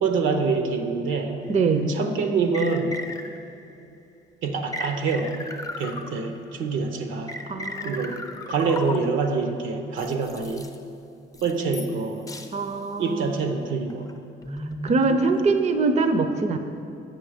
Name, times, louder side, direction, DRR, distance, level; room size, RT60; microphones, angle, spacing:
voice 1, 0.0-1.4 1.9-3.0 4.4-5.4 5.8-7.3 7.8-8.2 8.5-10.7 11.4-12.3 13.0-14.1, right 4 dB, 85° right, 6 dB, 0.8 m, -26 dB
sound 1, 1.5-1.6 2.5-3.6 4.7-6.5 7.3-9.3 10.0-10.8 11.3-12.0 12.3-12.5 13.0-13.3 13.9-15.8, left 1 dB, 15° left, 0.5 m, -36 dB
voice 2, 1.5-2.0 7.5-8.0 12.5-13.3 14.8-16.6, right 3 dB, 35° right, 8 dB, 0.5 m, -23 dB
7.8 x 5.7 x 4.9 m, 2.6 s
cardioid pair, 90°, 20 cm